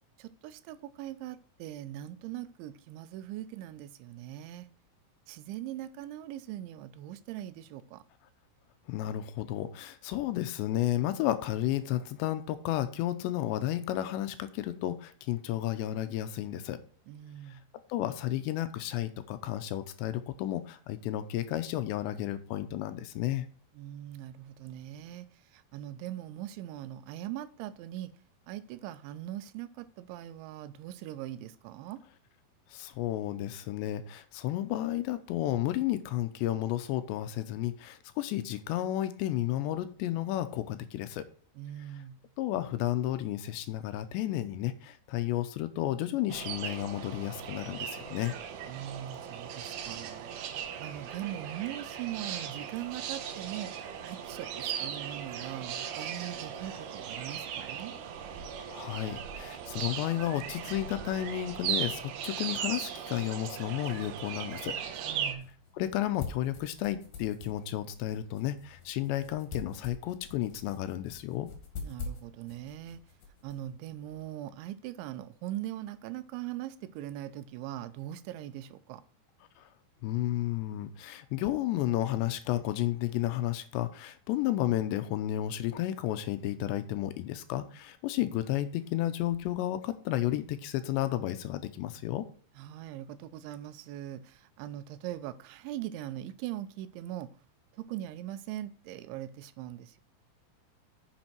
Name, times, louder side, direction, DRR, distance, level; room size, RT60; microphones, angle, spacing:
voice 1, 0.2-4.7 5.3-8.0 17.1-17.6 23.7-25.3 25.5-28.1 28.5-32.0 41.6-42.2 48.7-50.3 50.8-53.7 54.0-57.9 65.1-65.5 71.8-73.0 73.4-79.0 92.6-97.3 97.7-100.0, right 13 dB, 90° right, 3.0 m, -41 dB
voice 2, 8.9-16.8 17.9-23.5 32.7-41.3 42.4-48.3 58.6-64.8 65.7-71.5 80.0-92.3, left 13 dB, 80° left, 2.8 m, -32 dB
sound 1, 46.3-65.3, right 8 dB, 70° right, 2.6 m, -38 dB
sound 2, 64.6-74.3, left 4 dB, 55° left, 3.3 m, -46 dB
9.7 x 7.3 x 4.5 m
omnidirectional pair, 5.3 m